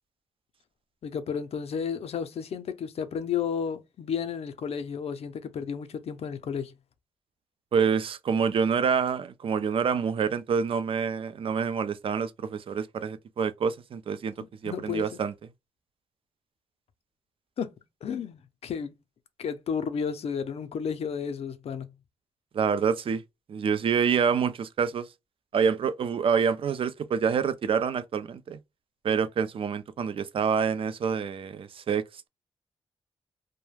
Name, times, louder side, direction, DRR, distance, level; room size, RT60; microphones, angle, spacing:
voice 1, 1.0-6.7 14.6-15.1 17.6-17.7 18.0-18.9 19.4-22.0, left 7 dB, 70° left, 0.5 m, -32 dB
voice 2, 7.7-14.3 14.6-15.3 22.5-23.2 23.5-25.1 25.5-28.6 29.0-32.0, right 6 dB, 55° right, 0.4 m, -27 dB
2.3 x 2.1 x 3.1 m
cardioid pair, 75°, 11 cm